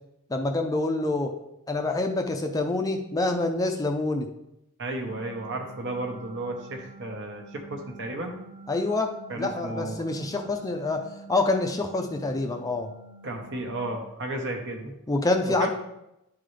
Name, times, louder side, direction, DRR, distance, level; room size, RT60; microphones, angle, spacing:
voice 1, 0.3-1.3 1.7-4.3 8.7-12.9 15.1-15.7, left 2 dB, 15° left, 4 dB, 0.4 m, -26 dB
voice 2, 4.8-8.4 9.3-10.1 13.2-14.9 15.5-15.7, right 1 dB, 55° right, 3 dB, 1.1 m, -33 dB
sound 1, 5.0-13.9, right 3 dB, 25° right, 0.8 m, -47 dB
11.0 x 3.8 x 3.2 m, 0.86 s
head